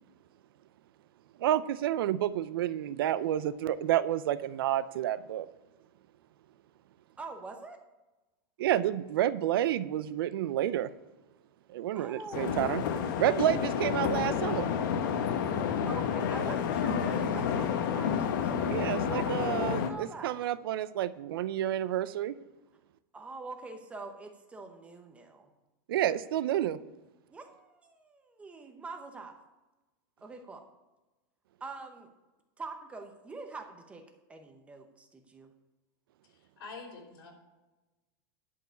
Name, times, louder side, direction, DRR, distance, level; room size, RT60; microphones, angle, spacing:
voice 1, 1.4-5.5 8.6-10.9 11.7-12.8 13.2-14.7 18.7-22.3 25.9-26.8, right 12 dB, 80° right, 16 dB, 0.5 m, -29 dB
voice 2, 7.2-7.8 11.9-12.7 15.9-20.3 23.1-25.5 27.3-29.4 30.2-30.6 31.6-32.1 32.6-34.0 34.3-35.5, right 3 dB, 10° right, 5 dB, 0.8 m, -44 dB
sound 1, 12.3-19.9, left 7 dB, 60° left, 1.0 m, -30 dB
voice 3, 36.6-37.3, left 4 dB, 85° left, 1 dB, 3.5 m, -45 dB
11.5 x 4.7 x 8.3 m, 1.1 s
supercardioid pair, 165°, 12 cm